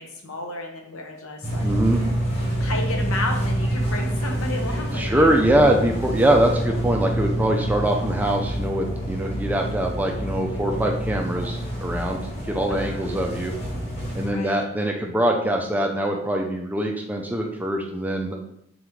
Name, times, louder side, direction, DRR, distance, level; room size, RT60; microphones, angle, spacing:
voice 1, 0.0-1.7 2.6-5.5 12.7-13.1 14.3-14.7, left 2 dB, 90° left, 2 dB, 0.8 m, -32 dB
sound 1, 1.4-14.3, right 1 dB, 30° left, 1.3 m, -27 dB
voice 2, 1.6-2.0 4.9-12.2 12.5-13.5 14.1-18.4, right 1 dB, 10° right, 2 dB, 0.3 m, -23 dB
3.8 x 3.5 x 3.1 m, 0.75 s
head